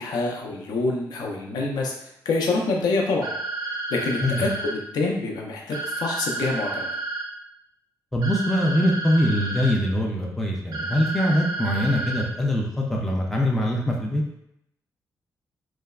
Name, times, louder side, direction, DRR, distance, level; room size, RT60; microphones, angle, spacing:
voice 1, 0.0-3.3 3.9-6.9, left 3 dB, 70° left, 0 dB, 0.5 m, -26 dB
sound 1, 3.2-4.7 5.7-7.2 8.2-9.7 10.7-12.2, right 2 dB, 85° right, 0.4 m, -31 dB
voice 2, 8.1-14.2, equal, 5° left, -2 dB, 0.4 m, -23 dB
3.3 x 2.0 x 2.3 m, 0.78 s
wide cardioid pair, 160°, 7 cm